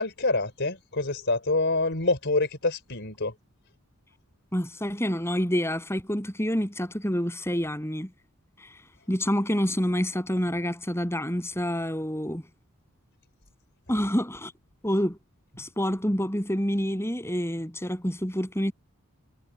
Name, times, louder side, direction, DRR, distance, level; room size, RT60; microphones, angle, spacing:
voice 1, 0.0-3.3, left 2 dB, 55° left, 4.4 m, -26 dB
voice 2, 4.5-8.1 8.6-8.7 9.1-12.4 13.9-14.5 14.8-15.2 15.6-18.7, equal, 10° left, 7.9 m, -27 dB
head